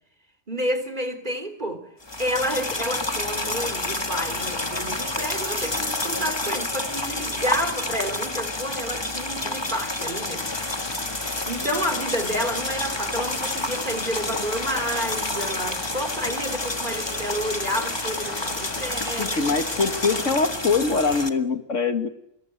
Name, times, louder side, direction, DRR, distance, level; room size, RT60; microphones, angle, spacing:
voice 1, 0.5-1.8 2.2-10.5 11.4-19.5, equal, 35° right, 3.5 m, -30 dB
sound 1, 2.0-21.3, left 2 dB, 20° left, 1.7 m, -29 dB
sound 2, 10.4-20.4, left 3 dB, 45° left, 1.9 m, -39 dB
voice 2, 19.2-22.1, left 4 dB, 70° left, 2.2 m, -23 dB
26.5 x 22.0 x 9.1 m
omnidirectional pair, 1.3 m